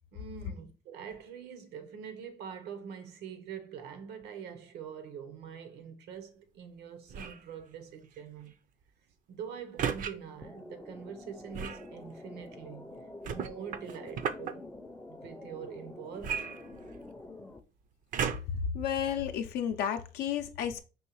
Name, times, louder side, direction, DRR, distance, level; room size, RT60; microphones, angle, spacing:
voice 1, 0.1-8.5 9.3-13.0 13.3-14.7 15.1-16.4, right 7 dB, 80° right, 0.8 m, -44 dB
sound 1, 7.1-7.5 9.8-10.1 11.5-11.9 13.2-14.5 16.2-17.2 18.1-18.7 19.3-19.4, right 7 dB, 50° right, 0.5 m, -34 dB
sound 2, 10.4-17.6, left 2 dB, 10° left, 0.4 m, -47 dB
voice 2, 18.7-20.8, left 9 dB, 80° left, 0.5 m, -32 dB
5.4 x 3.1 x 2.9 m
cardioid pair, 110°, 17 cm